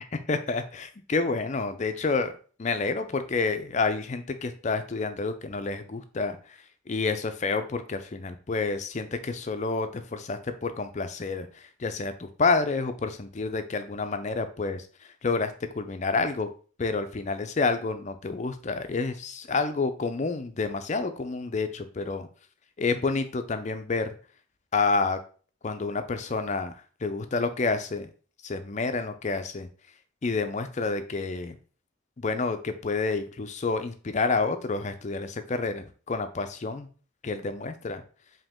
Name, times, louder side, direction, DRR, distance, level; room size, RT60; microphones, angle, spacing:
voice 1, 0.3-2.3 2.6-6.4 6.9-11.5 11.8-14.8 15.2-16.5 16.8-22.3 22.8-24.1 24.7-25.2 25.6-26.7 27.0-28.1 28.4-29.7 30.2-31.5 32.2-36.9 37.2-38.0, left 4 dB, 35° left, 9 dB, 0.5 m, -29 dB
5.0 x 2.8 x 3.6 m, 0.40 s
head